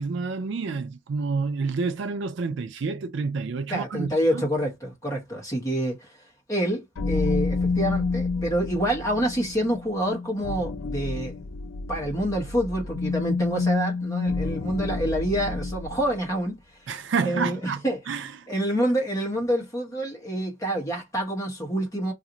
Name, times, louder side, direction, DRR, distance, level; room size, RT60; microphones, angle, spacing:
voice 1, 0.0-4.5 16.9-17.8 18.1-18.3, right 4 dB, 65° right, 0.4 m, -29 dB
voice 2, 3.7-6.2 6.5-11.3 11.9-16.9 17.2-18.2 18.5-22.1, right 1 dB, 15° left, 1.0 m, -27 dB
sound 1, 7.0-16.1, left 3 dB, 80° left, 0.5 m, -29 dB
2.5 x 2.5 x 2.9 m
head